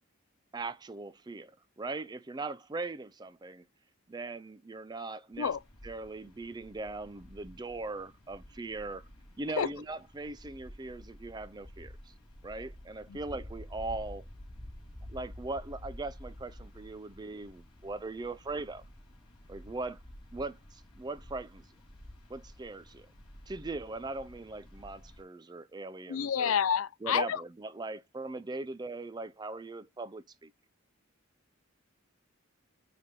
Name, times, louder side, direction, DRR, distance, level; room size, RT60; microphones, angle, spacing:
voice 1, 0.5-3.6 4.1-5.5 5.8-9.0 9.4-12.1 12.4-14.3 15.1-18.8 19.5-20.0 20.3-21.7 22.3-23.1 23.5-26.5 27.0-30.5, right 3 dB, 20° right, 0.4 m, -40 dB
sound 1, 5.3-25.2, left 1 dB, 25° left, 3.8 m, -50 dB
voice 2, 26.1-27.4, left 8 dB, 70° left, 0.4 m, -29 dB
9.7 x 3.5 x 3.7 m
head